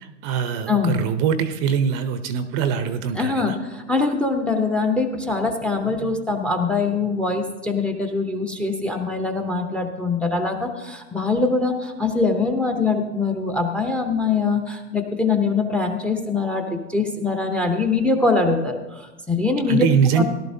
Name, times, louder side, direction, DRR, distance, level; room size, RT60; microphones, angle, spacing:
voice 1, 0.0-3.6 19.7-20.2, right 7 dB, 35° right, 10 dB, 0.7 m, -23 dB
voice 2, 0.7-1.0 3.1-19.8 20.2-20.3, left 3 dB, 5° left, 5 dB, 0.8 m, -23 dB
17.5 x 11.5 x 2.7 m, 1.1 s
hypercardioid pair, 130°, 38 cm